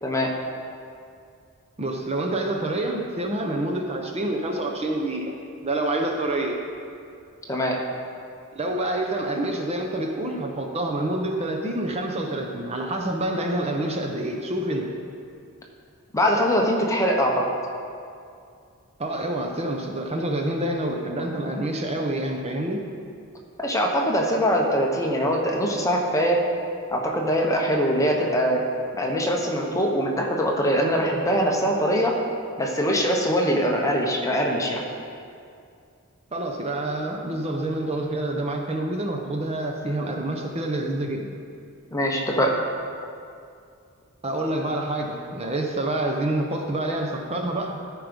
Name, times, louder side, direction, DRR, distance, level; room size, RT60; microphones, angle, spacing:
voice 1, 0.0-0.3 7.5-7.8 16.1-17.5 23.6-26.4 26.9-28.6 29.0-32.2 32.6-34.8 41.9-42.5, equal, 15° left, 0 dB, 0.9 m, -22 dB
voice 2, 1.8-5.3 5.6-6.6 8.5-15.0 19.0-22.8 36.3-41.4 44.2-47.8, right 1 dB, 30° right, 2 dB, 0.7 m, -27 dB
14.0 x 4.7 x 5.2 m, 2.4 s
head